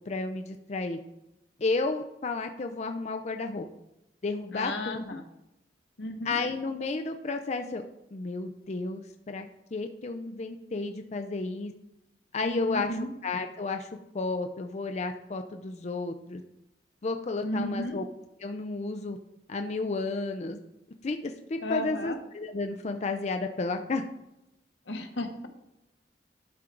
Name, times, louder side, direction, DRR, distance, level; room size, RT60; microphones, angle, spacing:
voice 1, 0.1-1.0 1.6-3.7 4.2-5.2 6.3-7.8 8.1-9.5 9.7-11.7 12.3-13.0 13.2-16.4 17.0-18.0 18.4-19.2 19.5-20.6 21.0-24.0, left 3 dB, 40° left, 6 dB, 0.5 m, -32 dB
voice 2, 4.5-5.2 6.0-6.4 12.4-13.1 17.4-18.0 21.6-22.2 24.9-25.5, left 1 dB, 85° left, 6 dB, 1.1 m, -34 dB
12.0 x 4.5 x 3.8 m, 0.88 s
head